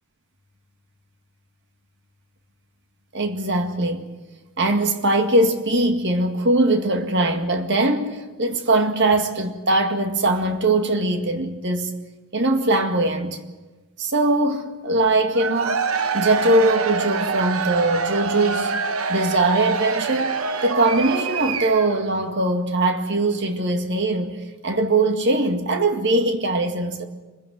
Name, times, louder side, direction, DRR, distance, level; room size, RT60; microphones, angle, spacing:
voice 1, 3.1-4.1 4.6-11.9 12.3-13.4 14.0-15.8 16.1-18.7 19.1-20.3 20.6-27.1, right 2 dB, 55° right, 2.0 m, -21 dB
Cheering / Crowd, 15.3-22.0, right 5 dB, 80° right, 1.3 m, -25 dB
26.0 x 16.0 x 9.5 m
head